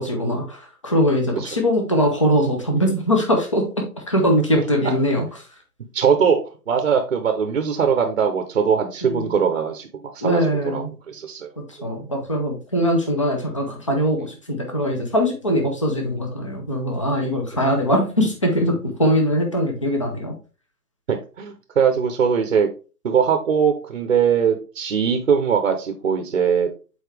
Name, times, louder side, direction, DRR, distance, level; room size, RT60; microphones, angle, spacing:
voice 1, 0.0-3.6 4.1-5.2 9.0-9.3 10.2-10.9 11.8-20.3, equal, 20° left, 2 dB, 0.5 m, -21 dB
voice 2, 5.9-6.4 6.7-11.5 14.2-14.3 21.1-22.7 23.0-26.7, right 7 dB, 40° right, 6 dB, 0.8 m, -21 dB
6.8 x 4.4 x 3.3 m, 0.35 s
hypercardioid pair, 160°, 50 cm